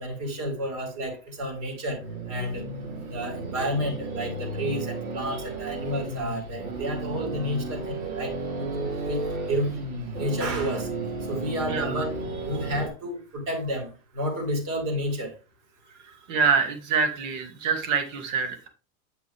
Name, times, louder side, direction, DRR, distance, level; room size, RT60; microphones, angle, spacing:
voice 1, 0.0-2.0 2.3-2.6 3.1-8.3 8.6-9.2 9.5-9.7 10.1-10.9 11.3-15.3, equal, 45° right, 4.5 m, -31 dB
sound 1, 1.9-12.9, right 2 dB, 80° right, 3.7 m, -33 dB
voice 2, 11.7-12.0 16.3-18.7, right 5 dB, 65° right, 2.5 m, -25 dB
8.9 x 6.1 x 3.5 m
hypercardioid pair, 110°, 42 cm